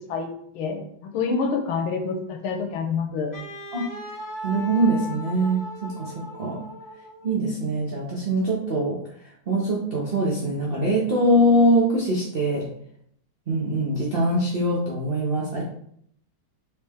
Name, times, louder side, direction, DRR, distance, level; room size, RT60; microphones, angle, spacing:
voice 1, 0.5-3.3, left 5 dB, 85° left, 4 dB, 1.6 m, -27 dB
Wind instrument woodwind instrument, 3.3-7.4, left 1 dB, 30° left, 0.3 m, -37 dB
voice 2, 4.4-6.1 6.4-6.6 7.2-12.6 13.5-15.6, right 1 dB, 65° right, -5 dB, 0.5 m, -23 dB
4.3 x 3.2 x 3.4 m, 0.68 s
omnidirectional pair, 2.2 m